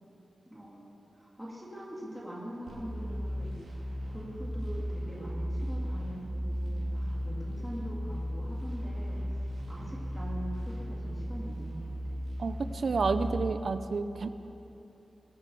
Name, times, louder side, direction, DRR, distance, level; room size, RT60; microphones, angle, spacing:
voice 1, 0.5-12.2, right 1 dB, 5° right, -5 dB, 2.5 m, -43 dB
sound 1, 2.7-13.3, equal, 80° right, 3.0 m, -35 dB
voice 2, 12.4-14.3, right 4 dB, 60° right, 10 dB, 0.6 m, -30 dB
22.5 x 8.4 x 7.0 m, 2.9 s
wide cardioid pair, 130°, 0 cm